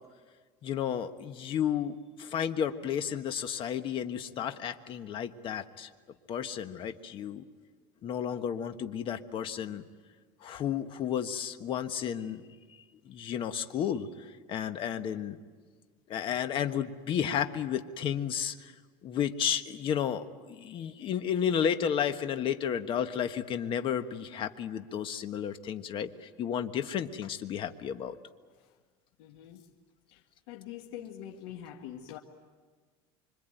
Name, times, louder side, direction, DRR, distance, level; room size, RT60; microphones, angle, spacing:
voice 1, 0.6-5.9 6.3-7.4 8.0-9.8 10.4-12.4 13.0-14.1 14.5-15.4 16.1-18.7 19.0-28.2, left 8 dB, 40° left, 9 dB, 1.4 m, -32 dB
voice 2, 29.2-29.6 30.1-30.2 30.5-32.2, left 10 dB, 80° left, 1 dB, 1.8 m, -44 dB
25.5 x 25.0 x 9.2 m, 1.5 s
cardioid pair, 145°, 14 cm